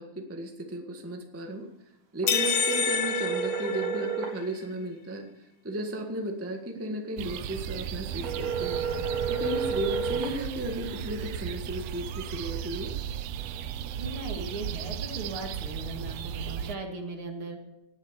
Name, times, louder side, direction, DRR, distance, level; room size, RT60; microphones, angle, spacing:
voice 1, 0.0-1.7 2.1-5.2 5.6-8.8 9.3-12.9, right 1 dB, 15° right, 3 dB, 0.4 m, -35 dB
sound 1, 2.2-4.4 8.2-10.4, right 6 dB, 65° right, 3.3 m, -31 dB
sound 2, 2.3-4.4, left 7 dB, 55° left, 2.2 m, -28 dB
sound 3, 7.2-16.8, right 9 dB, 80° right, 1.4 m, -35 dB
voice 2, 13.9-17.6, right 2 dB, 45° right, 3 dB, 2.6 m, -38 dB
19.0 x 8.0 x 7.3 m, 0.95 s
omnidirectional pair, 3.7 m